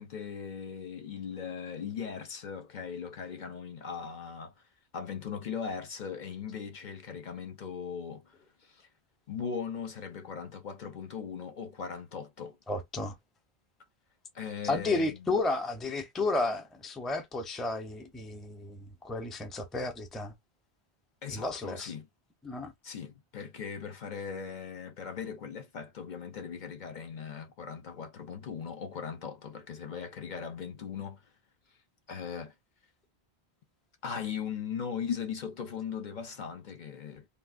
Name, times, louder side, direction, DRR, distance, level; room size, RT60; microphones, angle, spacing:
voice 1, 0.0-4.5 4.9-8.9 9.3-12.6 14.3-15.3 21.2-22.1 22.8-31.2 32.1-32.5 34.0-37.3, left 6 dB, 55° left, 0.7 m, -39 dB
voice 2, 12.7-13.1 14.6-20.3 21.3-21.9 22.4-22.7, left 2 dB, ahead, 0.4 m, -32 dB
3.5 x 2.3 x 2.4 m
omnidirectional pair, 1.0 m